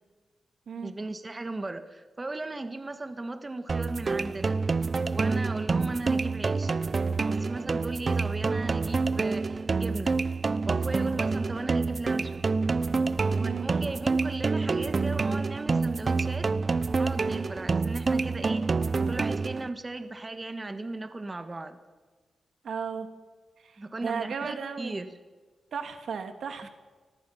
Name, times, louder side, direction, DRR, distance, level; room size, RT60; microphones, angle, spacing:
voice 1, 0.8-4.6 5.1-6.7 7.1-10.2 10.6-12.5 13.3-16.5 16.9-18.7 19.1-21.8 23.8-25.1 26.6-26.7, right 2 dB, 30° right, 8 dB, 1.9 m, -36 dB
sound 1, 3.7-19.7, right 4 dB, 45° right, 0.9 m, -27 dB
voice 2, 13.4-13.8 17.3-17.5 22.6-23.1 23.6-25.0 25.7-26.7, right 6 dB, 75° right, 7 dB, 2.4 m, -35 dB
29.5 x 20.0 x 6.0 m, 1.4 s
cardioid pair, 70°, 0 cm